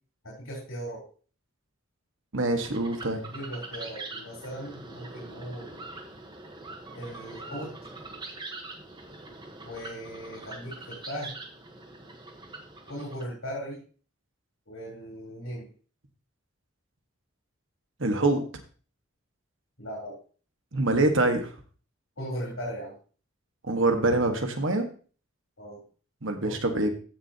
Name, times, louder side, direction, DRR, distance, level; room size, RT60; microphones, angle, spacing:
voice 1, 0.2-1.1 3.1-5.8 6.9-7.7 9.6-11.3 12.9-13.8 14.7-15.7 19.8-20.2 22.2-22.9 25.6-25.8 26.4-26.6, equal, 75° left, -4 dB, 3.8 m, -38 dB
voice 2, 2.3-3.2 18.0-18.4 20.7-21.5 23.6-24.9 26.2-26.9, right 2 dB, 65° right, 5 dB, 1.6 m, -25 dB
sound 1, 2.6-13.2, right 2 dB, 20° right, 1.2 m, -43 dB
15.0 x 6.6 x 2.9 m, 0.40 s
head